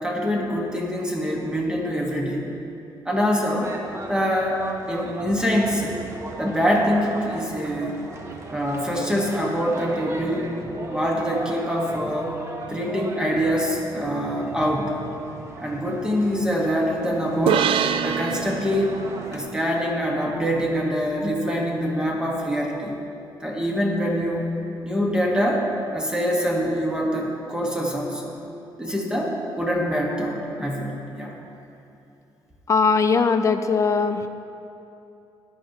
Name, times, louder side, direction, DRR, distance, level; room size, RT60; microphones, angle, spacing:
voice 1, 0.0-2.5 3.0-3.7 4.1-6.0 6.4-8.0 8.5-10.5 10.9-12.3 12.7-15.0 15.6-17.7 18.0-19.0 19.3-22.9 23.4-24.5 24.8-28.3 28.8-31.4, equal, 10° right, -2 dB, 1.4 m, -24 dB
sound 1, 3.6-19.4, right 2 dB, 30° right, 1.1 m, -37 dB
sound 2, 17.5-20.9, right 9 dB, 80° right, 0.4 m, -27 dB
voice 2, 32.7-34.3, left 5 dB, 35° left, 8 dB, 0.5 m, -20 dB
15.0 x 10.5 x 2.9 m, 2.7 s
cardioid pair, 125°, 9 cm